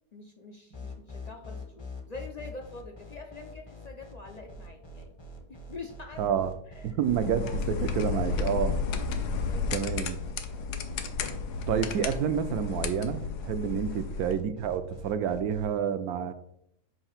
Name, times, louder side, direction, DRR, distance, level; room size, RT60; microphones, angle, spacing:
voice 1, 0.1-5.1 5.5-6.2 6.7-7.0 7.3-7.6 9.2-9.6 13.8-14.0, left 3 dB, 65° left, 2 dB, 0.4 m, -45 dB
sound 1, 0.7-15.7, left 2 dB, 25° left, 0.6 m, -44 dB
voice 2, 6.2-6.5 6.8-8.8 9.7-10.2 11.7-16.3, right 8 dB, 75° right, 10 dB, 1.1 m, -29 dB
sound 2, 7.0-14.3, left 5 dB, 85° left, 1.3 m, -32 dB
7.7 x 2.7 x 5.6 m, 0.74 s
omnidirectional pair, 1.7 m